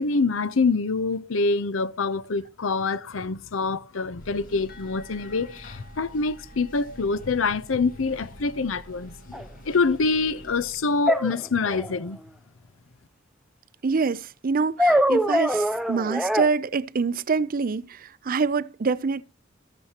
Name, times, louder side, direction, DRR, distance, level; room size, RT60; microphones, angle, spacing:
voice 1, 0.0-12.2, left 4 dB, 80° left, 0.7 m, -25 dB
sound 1, 4.2-10.8, equal, 45° left, 2.1 m, -47 dB
sound 2, 4.7-10.3, equal, 60° left, 6.8 m, -54 dB
sound 3, 9.3-9.4 11.1-12.0 14.8-16.5, equal, ahead, 0.6 m, -23 dB
voice 2, 13.8-19.2, right 4 dB, 45° right, 0.5 m, -25 dB
14.5 x 12.5 x 2.9 m
head